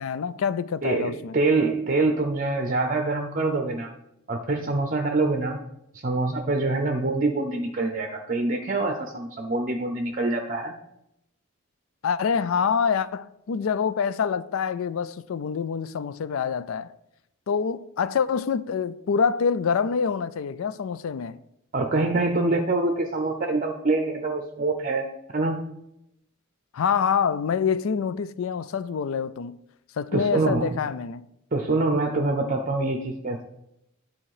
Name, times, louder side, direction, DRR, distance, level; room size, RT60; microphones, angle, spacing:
voice 1, 0.0-1.3 12.0-16.9 17.5-21.4 26.7-29.6 30.0-31.3, left 6 dB, 70° left, 0.4 m, -26 dB
voice 2, 0.8-3.9 4.3-5.6 5.9-10.7 21.7-25.0 25.3-25.6 30.1-30.8 31.5-33.4, right 3 dB, 40° right, 0.6 m, -25 dB
10.0 x 4.2 x 4.8 m
head